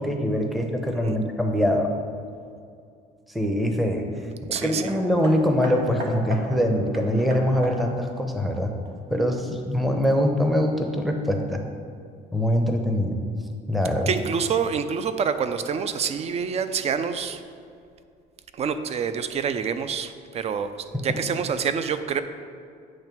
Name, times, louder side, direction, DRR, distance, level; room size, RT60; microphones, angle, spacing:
voice 1, 0.0-1.9 3.3-4.1 4.5-8.7 9.1-11.6 12.3-13.2 13.7-14.1, equal, ahead, 3 dB, 0.7 m, -23 dB
voice 2, 4.5-4.9 14.1-17.4 18.5-20.7 21.0-22.2, right 6 dB, 40° right, 10 dB, 0.5 m, -27 dB
Hammer, 4.6-9.3 10.1-10.2, right 1 dB, 80° right, 1.2 m, -38 dB
8.7 x 3.2 x 6.0 m, 2.4 s
cardioid pair, 110°, 17 cm